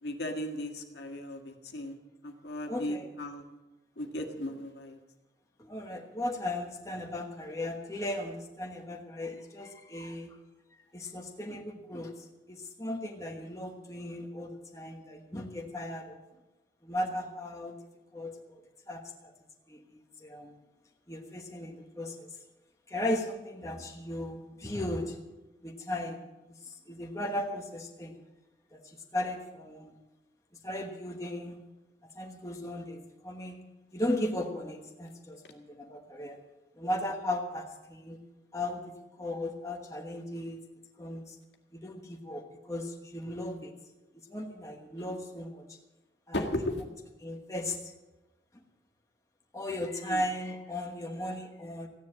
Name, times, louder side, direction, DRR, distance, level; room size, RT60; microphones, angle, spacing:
voice 1, 0.0-2.0 2.2-3.4 4.0-5.0 45.0-45.2 46.3-46.8 50.0-50.2, left 1 dB, 60° left, 2 dB, 1.8 m, -36 dB
voice 2, 2.7-3.1 5.6-10.4 10.9-16.2 16.8-17.7 18.1-18.6 18.9-19.3 19.7-20.5 21.1-22.3 22.9-25.2 25.6-26.2 26.6-28.2 28.7-30.0 30.6-31.6 32.1-33.6 33.9-36.4 36.8-38.2 38.5-40.6 41.0-41.4 41.7-43.8 44.3-45.8 46.3-46.4 47.2-47.9 49.5-51.9, left 1 dB, 15° left, 1 dB, 1.2 m, -36 dB
15.0 x 10.5 x 7.6 m, 1.1 s
head